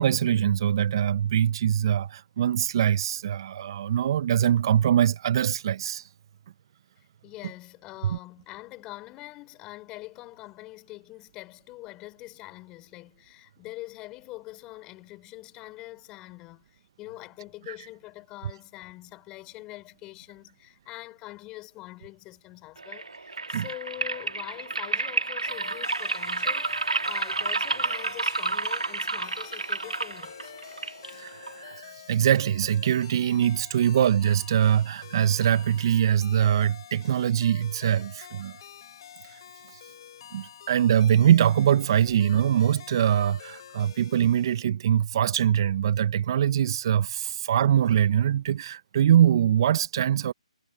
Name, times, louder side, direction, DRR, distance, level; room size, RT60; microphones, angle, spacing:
voice 1, 0.0-6.1 8.0-8.2 17.7-17.8 23.5-23.6 31.1-38.6 39.2-39.4 39.7-39.8 40.3-50.3, right 10 dB, 40° right, 1.1 m, -23 dB
voice 2, 7.2-30.5, left 19 dB, 20° left, 6.1 m, -44 dB
sound 1, 22.8-31.8, right 3 dB, 85° right, 2.2 m, -30 dB
sound 2, 25.5-44.6, left 9 dB, 45° left, 4.2 m, -48 dB
figure-of-eight pair, 145°, 4 cm